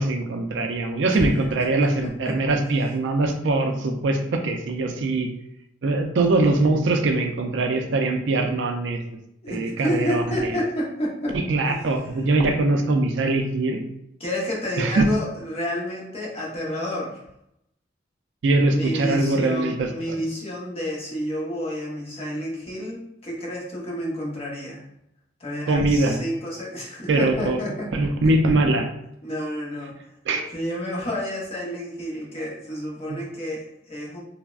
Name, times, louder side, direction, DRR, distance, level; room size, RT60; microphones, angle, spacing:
voice 1, 0.0-5.3 5.8-9.0 9.5-10.2 11.3-13.8 14.8-15.0 18.4-20.2 25.7-26.2 27.1-27.6 27.9-28.9 30.3-30.4 33.1-33.2, right 2 dB, 70° right, 4 dB, 0.4 m, -22 dB
voice 2, 1.1-2.6 9.4-11.4 11.7-11.8 14.2-17.2 18.7-24.8 25.4-27.9 29.2-29.9 30.5-34.2, equal, 35° left, -4 dB, 0.7 m, -30 dB
3.3 x 2.0 x 2.3 m, 0.80 s
head